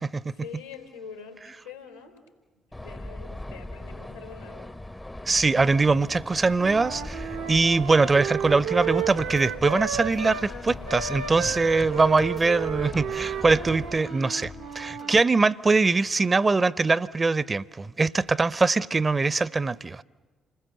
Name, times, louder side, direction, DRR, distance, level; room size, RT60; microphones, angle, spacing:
voice 1, 0.4-2.2 2.8-4.8, left 6 dB, 90° left, 3.7 m, -44 dB
sound 1, 2.7-14.1, left 1 dB, 15° left, 0.7 m, -40 dB
voice 2, 5.3-20.0, right 3 dB, 30° right, 0.7 m, -22 dB
Wind instrument woodwind instrument, 6.6-10.5 10.9-15.2, right 8 dB, 70° right, 0.8 m, -33 dB
sound 2, 8.5-15.2, left 5 dB, 45° left, 1.0 m, -44 dB
28.5 x 20.5 x 7.6 m
figure-of-eight pair, 40°, 0 cm